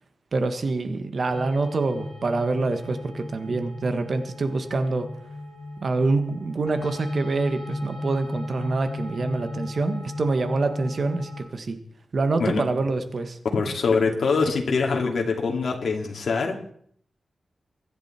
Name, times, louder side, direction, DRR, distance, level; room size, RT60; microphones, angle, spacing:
voice 1, 0.3-5.1 5.8-11.8 12.1-13.4, right 3 dB, 50° right, 8 dB, 1.6 m, -26 dB
sound 1, 1.3-11.4, left 2 dB, 15° left, 6.6 m, -35 dB
voice 2, 13.5-16.6, left 4 dB, 70° left, 1 dB, 2.6 m, -24 dB
23.5 x 10.5 x 4.4 m, 0.62 s
wide cardioid pair, 135°, 0 cm